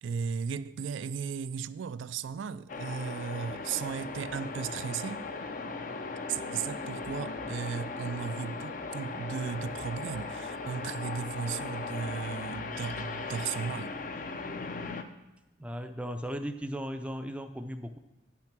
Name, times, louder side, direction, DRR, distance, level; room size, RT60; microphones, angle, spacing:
voice 1, 0.0-5.3 6.3-13.9, right 6 dB, 80° right, 0.3 m, -36 dB
sound 1, 2.7-15.0, left 3 dB, 45° left, 0.5 m, -38 dB
voice 2, 15.6-18.0, equal, 5° right, 0.4 m, -36 dB
9.5 x 6.0 x 5.9 m
head